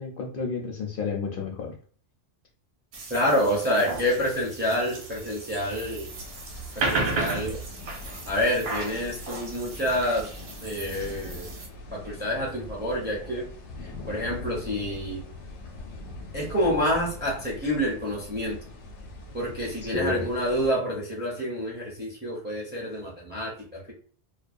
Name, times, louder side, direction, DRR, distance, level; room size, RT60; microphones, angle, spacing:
voice 1, 0.0-1.7 19.9-20.3, left 4 dB, 60° left, 0 dB, 0.7 m, -31 dB
sound 1, 2.9-11.7, right 3 dB, 65° right, 0.8 m, -34 dB
voice 2, 3.1-6.1 6.8-7.6 8.3-10.3 10.6-11.5 11.9-13.5 14.1-15.2 16.3-18.6 19.3-23.9, equal, 15° right, -3 dB, 0.5 m, -28 dB
sound 2, 6.1-20.7, left 2 dB, 90° left, 0.9 m, -42 dB
2.3 x 2.1 x 2.5 m, 0.44 s
omnidirectional pair, 1.2 m